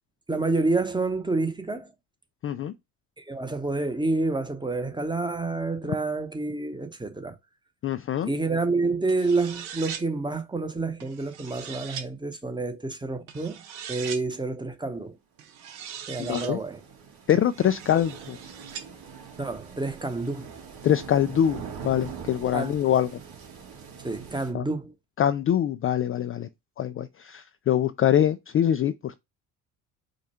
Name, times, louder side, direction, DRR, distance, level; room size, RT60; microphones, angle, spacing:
voice 1, 0.3-1.9 3.2-7.3 8.3-13.6 13.9-15.1 16.1-16.8 19.4-20.5 22.5-22.7 24.0-24.9, right 3 dB, 10° right, 0.9 m, -28 dB
voice 2, 2.4-2.7 7.8-8.3 16.2-16.6 17.3-18.4 20.8-23.1 24.5-24.6 25.2-26.5 26.8-29.2, left 10 dB, 30° left, 0.4 m, -24 dB
sound 1, 9.1-10.0 11.0-12.1 13.3-14.2 15.4-16.5 17.3-18.9, right 8 dB, 70° right, 1.1 m, -40 dB
sound 2, 15.6-24.5, right 6 dB, 55° right, 2.3 m, -43 dB
5.1 x 2.3 x 4.3 m
hypercardioid pair, 65°, 45 cm